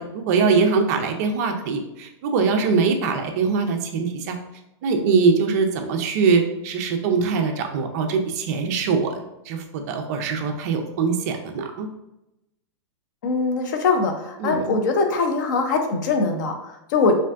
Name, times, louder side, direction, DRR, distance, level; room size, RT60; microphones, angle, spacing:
voice 1, 0.0-4.4 4.8-11.9 14.4-14.8, right 5 dB, 35° right, 4 dB, 0.3 m, -22 dB
voice 2, 13.2-17.2, left 4 dB, 40° left, 5 dB, 0.4 m, -22 dB
3.3 x 2.5 x 2.3 m, 0.92 s
supercardioid pair, 165°, 15 cm